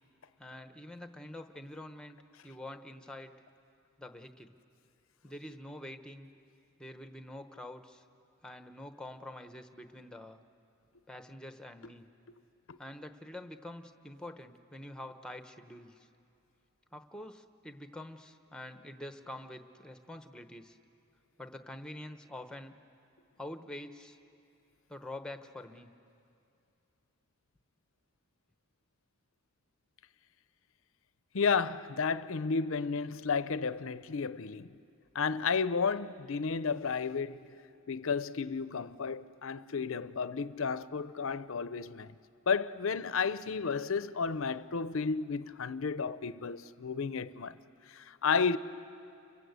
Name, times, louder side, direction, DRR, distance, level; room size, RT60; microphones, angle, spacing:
voice 1, 0.4-2.2 2.4-3.3 4.0-4.6 5.2-6.3 6.8-8.0 8.4-10.4 11.1-12.1 12.8-16.1 16.9-20.8 21.4-22.7 23.4-24.2 24.9-25.9, left 1 dB, 5° left, 0.9 m, -46 dB
voice 2, 31.3-34.8 35.1-37.5 37.9-42.1 42.5-47.5 47.9-48.6, left 5 dB, 60° left, 0.6 m, -32 dB
29.5 x 24.0 x 8.2 m
head